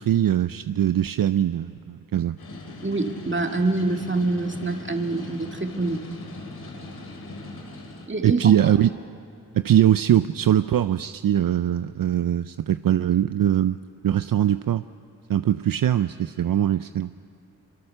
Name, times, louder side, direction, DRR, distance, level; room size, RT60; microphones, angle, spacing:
voice 1, 0.0-2.4 8.2-8.9 9.5-13.8 14.0-14.8 15.3-17.1, right 11 dB, 65° right, 13 dB, 0.5 m, -21 dB
sound 1, 2.4-8.1, left 2 dB, 85° left, 2.8 m, -40 dB
voice 2, 2.8-6.0 8.1-8.4, right 2 dB, 30° right, 4 dB, 2.1 m, -25 dB
24.5 x 24.0 x 6.7 m, 2.7 s
cardioid pair, 55°, 37 cm